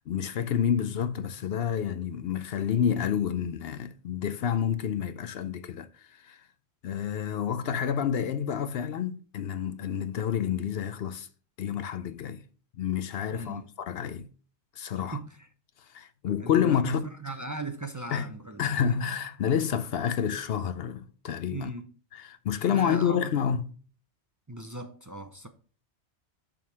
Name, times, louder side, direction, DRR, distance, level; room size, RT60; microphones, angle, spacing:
voice 1, 0.1-6.4 6.8-11.3 11.6-12.4 12.8-14.3 14.8-15.2 15.9-17.1 18.1-21.7 22.1-23.7, left 8 dB, 65° left, 0.8 m, -29 dB
voice 2, 13.3-13.6 15.0-15.4 16.3-16.9 17.2-18.7 21.5-21.9 22.7-23.3 24.5-25.5, right 2 dB, 25° right, 0.5 m, -38 dB
6.9 x 3.8 x 6.0 m
omnidirectional pair, 1.1 m